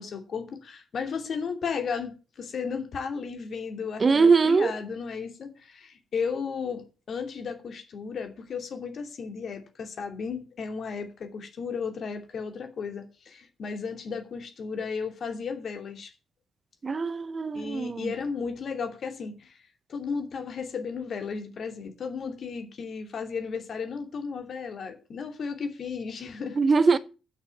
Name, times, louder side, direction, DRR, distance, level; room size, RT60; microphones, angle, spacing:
voice 1, 0.0-16.1 17.5-19.6 19.9-26.6 26.9-27.0, left 5 dB, 55° left, 2.7 m, -34 dB
voice 2, 4.0-4.7 16.8-18.1 26.6-27.0, right 4 dB, 40° right, 0.9 m, -22 dB
8.8 x 6.4 x 8.3 m
hypercardioid pair, 50°, 0 cm